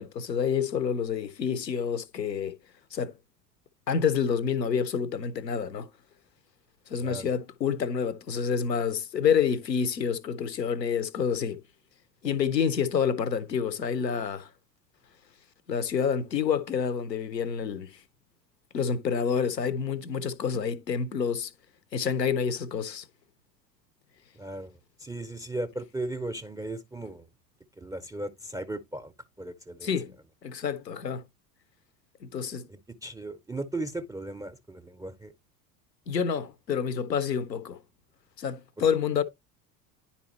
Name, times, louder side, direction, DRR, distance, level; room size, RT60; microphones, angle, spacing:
voice 1, 0.0-2.6 2.9-3.1 3.9-5.9 6.9-11.6 12.2-14.5 15.7-18.0 18.7-21.5 21.9-23.0 29.8-30.1 30.4-31.2 32.2-32.7 36.1-37.8 38.4-39.2, left 7 dB, 90° left, 0.6 m, -28 dB
voice 2, 7.0-7.3 24.4-24.7 25.0-27.3 27.8-29.1 29.4-29.9 32.7-35.3 38.8-38.9, right 2 dB, 5° right, 0.4 m, -36 dB
10.0 x 4.1 x 2.9 m
figure-of-eight pair, 70°, 49 cm